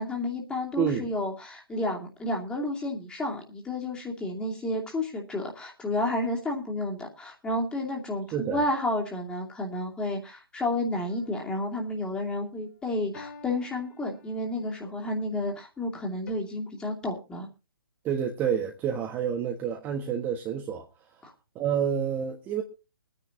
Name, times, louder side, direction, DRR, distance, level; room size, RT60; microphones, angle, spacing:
voice 1, 0.0-17.5 21.2-21.3, left 1 dB, 10° left, 2.6 m, -31 dB
voice 2, 0.8-1.1 8.3-8.6 18.0-20.9 21.5-22.6, right 8 dB, 15° right, 1.4 m, -28 dB
sound 1, 11.1-11.8 13.1-14.8 16.3-16.4, left 4 dB, 50° left, 3.1 m, -49 dB
23.5 x 9.9 x 2.7 m
figure-of-eight pair, 135°, 12 cm